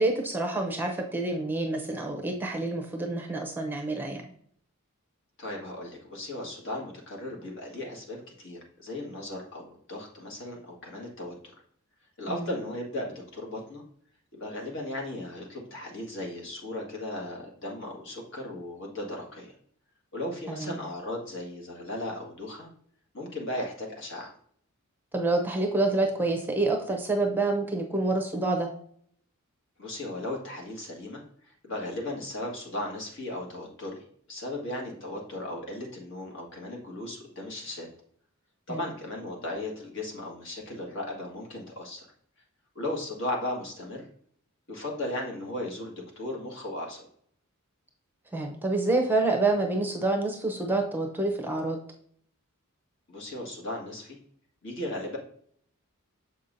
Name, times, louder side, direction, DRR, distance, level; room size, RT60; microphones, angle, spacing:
voice 1, 0.0-4.2 12.3-12.4 20.5-20.8 25.1-28.7 38.7-38.8 48.3-51.8, right 2 dB, 10° right, 2 dB, 0.6 m, -27 dB
voice 2, 5.4-11.5 12.2-13.8 14.3-19.5 20.1-22.7 23.1-24.3 29.8-37.9 38.7-42.1 42.7-44.0 44.7-47.1 53.1-54.2 54.6-55.2, left 1 dB, 60° left, -1 dB, 1.7 m, -36 dB
6.9 x 5.5 x 2.6 m, 0.63 s
head